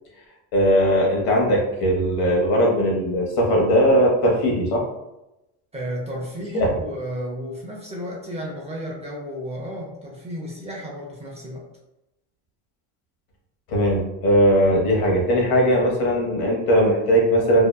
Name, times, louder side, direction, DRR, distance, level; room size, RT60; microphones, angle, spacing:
voice 1, 0.5-4.8 6.5-6.7 13.7-17.7, equal, 65° left, -1 dB, 1.0 m, -19 dB
voice 2, 5.7-11.6, equal, 15° right, -3 dB, 0.5 m, -33 dB
2.7 x 2.1 x 2.2 m, 0.92 s
supercardioid pair, 105°, 39 cm